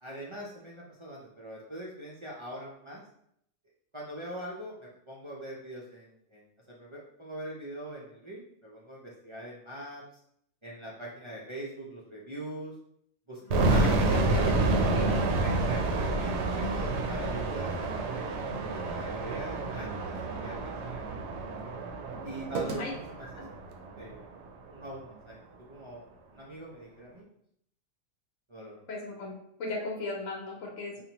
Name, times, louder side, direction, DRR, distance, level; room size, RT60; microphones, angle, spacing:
voice 1, 0.0-3.0 3.9-10.0 10.6-12.7 13.3-13.9 15.4-18.1 18.6-21.2 22.2-23.3 24.0-24.2 24.7-25.4 25.7-27.3 28.5-28.9, right 1 dB, 50° right, -5 dB, 0.3 m, -43 dB
voice 2, 13.4-14.5 14.8-15.2 22.8-22.9 23.4-23.5 28.9-29.3 29.6-31.0, left 3 dB, 70° left, -2 dB, 1.1 m, -37 dB
sound 1, 13.5-24.4, right 2 dB, 65° right, 0.8 m, -29 dB
sound 2, 19.3-23.9, right 4 dB, 90° right, 1.0 m, -46 dB
5.4 x 2.1 x 2.9 m, 0.70 s
omnidirectional pair, 1.4 m